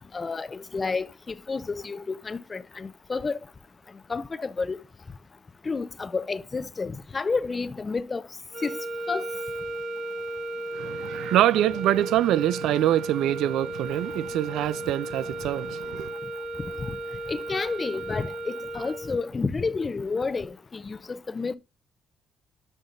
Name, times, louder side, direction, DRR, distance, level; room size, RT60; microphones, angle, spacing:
voice 1, 0.1-3.4 4.1-4.8 5.6-8.2 8.6-8.7 9.1-9.2 16.9-17.0 17.3-21.6, left 4 dB, 30° left, 0.6 m, -30 dB
sound 1, 8.5-19.4, right 1 dB, 60° right, 2.2 m, -35 dB
voice 2, 10.7-16.1, right 13 dB, 85° right, 0.3 m, -25 dB
9.5 x 5.3 x 2.5 m
cardioid pair, 90°, 0 cm